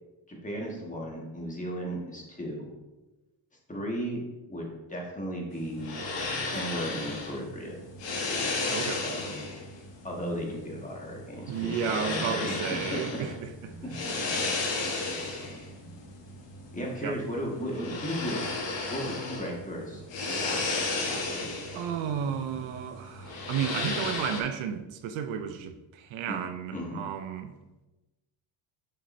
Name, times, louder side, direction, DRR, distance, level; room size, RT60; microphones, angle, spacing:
voice 1, 0.3-2.7 3.7-4.2 4.5-5.9 6.4-7.8 9.0-9.4 10.0-13.2 14.4-14.6 16.7-18.4 18.9-20.0 20.4-20.6 21.0-21.5 26.3-26.4 26.7-27.0, equal, 15° left, -2 dB, 1.8 m, -35 dB
sound 1, 5.5-24.4, left 3 dB, 65° left, 1.5 m, -34 dB
voice 2, 8.7-9.1 11.5-13.7 17.0-17.2 21.7-27.5, right 8 dB, 75° right, 8 dB, 0.7 m, -33 dB
7.0 x 6.1 x 2.7 m, 1.1 s
cardioid pair, 100°, 48 cm